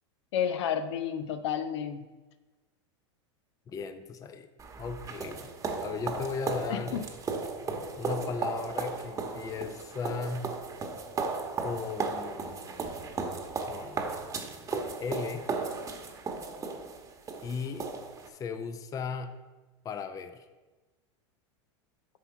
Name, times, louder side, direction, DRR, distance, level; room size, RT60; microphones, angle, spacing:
voice 1, 0.3-2.0 6.7-7.0, left 8 dB, 70° left, 10 dB, 0.8 m, -31 dB
voice 2, 3.7-4.5 4.8-5.5 5.8-7.1 8.0-10.5 11.6-12.9 13.6-14.2 14.7-15.5 17.4-17.9 18.3-19.3 19.8-20.5, left 5 dB, 20° left, 9 dB, 0.6 m, -36 dB
sound 1, 4.6-18.3, right 4 dB, 20° right, 1.1 m, -35 dB
9.5 x 5.9 x 4.7 m, 1.2 s
hypercardioid pair, 120°, 15 cm